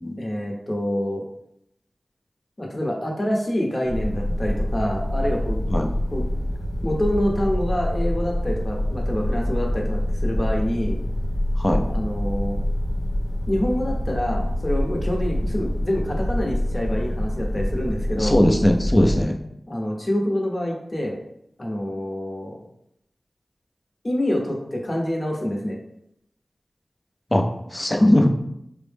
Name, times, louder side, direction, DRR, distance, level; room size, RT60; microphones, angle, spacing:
voice 1, 0.2-1.2 2.6-5.6 6.1-6.3 6.8-11.0 11.9-12.6 13.5-18.4 19.7-21.2 21.6-22.6 24.0-25.8, left 1 dB, 40° left, -1 dB, 0.9 m, -26 dB
sound 1, 3.8-19.3, left 1 dB, 85° left, 0.9 m, -26 dB
voice 2, 18.2-19.4 27.3-27.4 27.7-28.3, left 1 dB, 25° left, 3 dB, 0.5 m, -19 dB
4.5 x 2.1 x 3.4 m, 0.77 s
wide cardioid pair, 50°, 0 cm